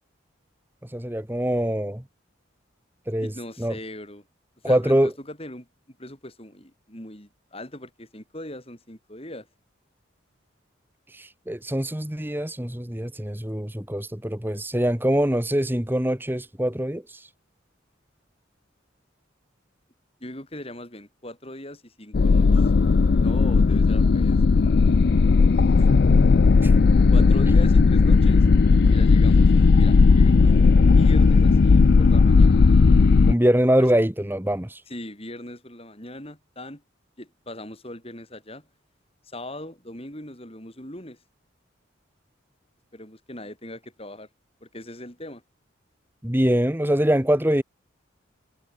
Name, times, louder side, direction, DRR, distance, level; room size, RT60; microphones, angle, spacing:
voice 1, 0.8-2.0 3.1-3.3 3.6-3.7 4.6-5.1 11.1-17.3 26.6-26.8 33.3-34.8 46.2-47.6, right 1 dB, 10° right, 1.3 m, -23 dB
voice 2, 3.2-4.3 4.6-9.5 20.2-22.7 23.2-25.0 25.8-25.9 27.1-28.5 28.9-32.6 33.8-33.9 34.9-36.8 37.2-38.7 39.2-41.2 42.9-44.3 44.6-45.4, left 1 dB, 30° left, 7.4 m, -40 dB
sound 1, 22.1-33.3, left 4 dB, 55° left, 0.4 m, -16 dB
head